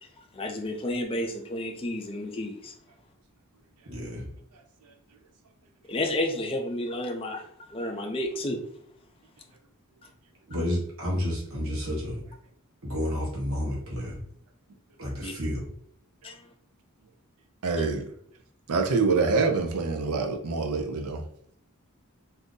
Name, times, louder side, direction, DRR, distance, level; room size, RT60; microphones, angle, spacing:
voice 1, 0.3-2.7 5.9-8.6 15.2-15.3 16.2-16.4 17.8-17.9, left 1 dB, 25° left, 2 dB, 0.4 m, -31 dB
voice 2, 3.9-4.2 10.5-12.2 12.8-14.2 15.0-15.7, left 1 dB, 65° right, -4 dB, 1.0 m, -30 dB
voice 3, 17.6-18.1 18.7-21.2, right 4 dB, 85° right, 5 dB, 0.5 m, -25 dB
2.6 x 2.5 x 3.7 m, 0.67 s
head